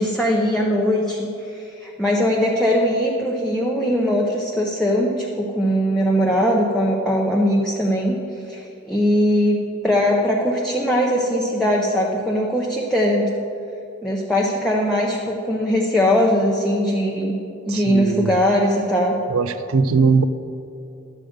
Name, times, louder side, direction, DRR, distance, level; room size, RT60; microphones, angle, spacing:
voice 1, 0.0-8.2 8.5-8.6 8.9-9.6 9.8-13.3 14.0-17.3 17.7-19.1, equal, 5° left, -3 dB, 0.7 m, -20 dB
voice 2, 17.7-18.3 19.3-20.2, right 5 dB, 75° right, 12 dB, 0.5 m, -19 dB
11.5 x 7.6 x 5.1 m, 2.6 s
head